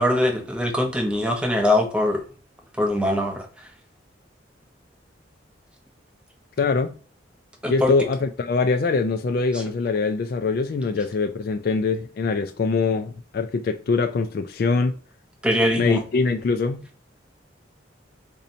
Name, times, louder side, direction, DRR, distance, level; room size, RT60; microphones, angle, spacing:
voice 1, 0.0-2.2 2.8-3.5 7.6-7.9 9.5-9.6 15.4-16.0, left 1 dB, 5° right, 0.6 m, -22 dB
voice 2, 6.6-7.0 7.7-14.9 15.8-16.8, left 4 dB, 50° left, 0.3 m, -23 dB
2.7 x 2.6 x 4.2 m
head